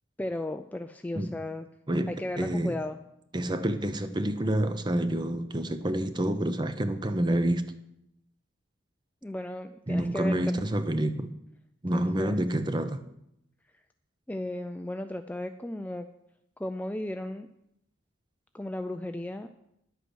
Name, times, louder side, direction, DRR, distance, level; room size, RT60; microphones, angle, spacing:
voice 1, 0.2-1.7 2.1-3.0 9.2-10.6 11.9-12.4 14.3-16.1 16.6-17.5 18.5-19.5, left 1 dB, 10° left, 0.3 m, -35 dB
voice 2, 1.9-2.8 3.3-7.6 9.9-11.3 11.8-13.0, right 1 dB, 20° right, 0.6 m, -28 dB
11.0 x 8.2 x 6.2 m
head